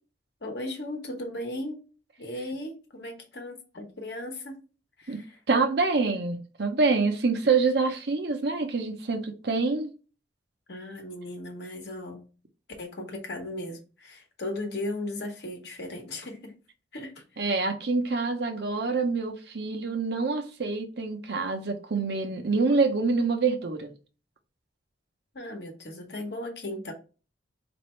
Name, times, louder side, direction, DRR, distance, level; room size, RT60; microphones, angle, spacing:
voice 1, 0.4-1.8 2.2-4.6 5.0-5.4 10.7-12.3 12.8-16.5 16.9-17.2 25.3-26.9, left 1 dB, 60° left, 1.1 m, -36 dB
voice 2, 5.1-9.9 17.4-23.9, right 4 dB, 60° right, 0.7 m, -26 dB
4.2 x 2.6 x 3.1 m
head